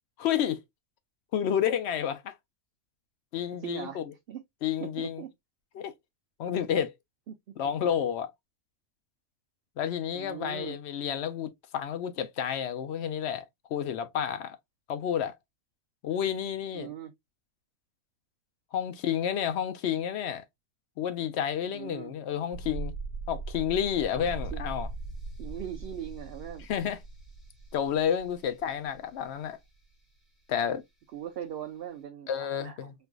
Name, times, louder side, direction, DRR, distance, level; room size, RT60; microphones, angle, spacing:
voice 1, 0.2-0.6 1.3-2.3 3.3-4.1 4.6-5.2 5.7-5.9 6.4-6.9 7.6-8.3 9.8-14.6 14.9-15.3 16.0-16.9 18.7-20.4 21.0-22.9 23.3-24.9 26.7-27.0 27.7-29.6 30.5-30.8 32.3-32.9, left 9 dB, 65° left, 0.7 m, -30 dB
voice 2, 3.6-4.4 4.8-5.3 7.3-7.4 10.1-10.8 16.7-17.1 21.7-22.1 24.5-24.6 25.4-26.7 31.1-32.3 32.5-32.9, right 10 dB, 65° right, 0.6 m, -40 dB
sound 1, 22.5-29.3 29.6-29.7, right 3 dB, ahead, 1.0 m, -40 dB
4.4 x 2.4 x 2.3 m
omnidirectional pair, 1.4 m